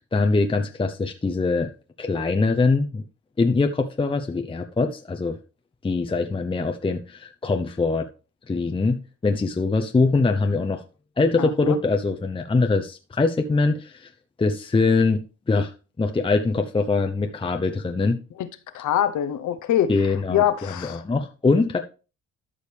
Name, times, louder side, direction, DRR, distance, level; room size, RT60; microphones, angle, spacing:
voice 1, 0.0-1.7 2.0-3.0 3.4-5.4 5.8-8.1 8.5-10.8 11.2-14.1 14.4-15.7 16.0-18.2 19.9-20.4 20.8-21.8, left 3 dB, 15° left, 0.7 m, -23 dB
voice 2, 11.4-11.8 18.4-18.5 18.7-19.9 20.3-21.0, left 10 dB, 75° left, 0.9 m, -24 dB
13.0 x 5.1 x 3.4 m
cardioid pair, 90°, 30 cm